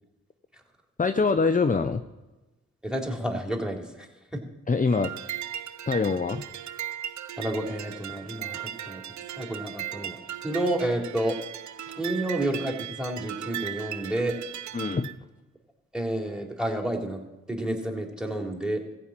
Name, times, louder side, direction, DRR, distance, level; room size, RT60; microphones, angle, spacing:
voice 1, 1.0-2.0 4.7-5.1 5.9-6.4 14.7-15.1, left 4 dB, 25° left, 9 dB, 0.8 m, -24 dB
voice 2, 2.8-4.4 7.4-9.0 9.4-10.2 10.4-11.4 11.9-14.4 15.9-17.2 17.5-18.8, right 1 dB, ahead, 2 dB, 3.4 m, -30 dB
sound 1, 4.9-15.1, right 11 dB, 70° right, 0.6 m, -37 dB
14.5 x 5.5 x 8.9 m, 1.1 s
supercardioid pair, 45°, 30 cm